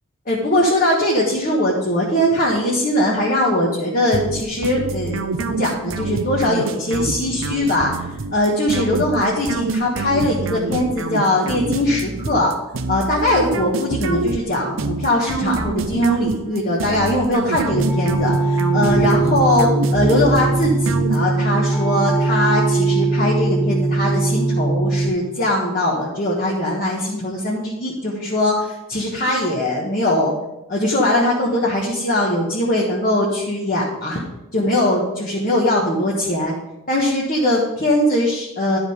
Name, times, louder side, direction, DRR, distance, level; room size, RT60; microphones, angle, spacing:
voice 1, 0.3-8.0 8.3-12.5 12.9-30.3 30.7-34.2 34.5-36.5 36.9-38.8, left 1 dB, 40° left, -5 dB, 1.3 m, -20 dB
sound 1, 4.1-21.6, right 3 dB, 65° right, 0.6 m, -26 dB
sound 2, 17.7-25.1, right 3 dB, ahead, 1.5 m, -20 dB
11.0 x 5.0 x 5.0 m, 0.94 s
head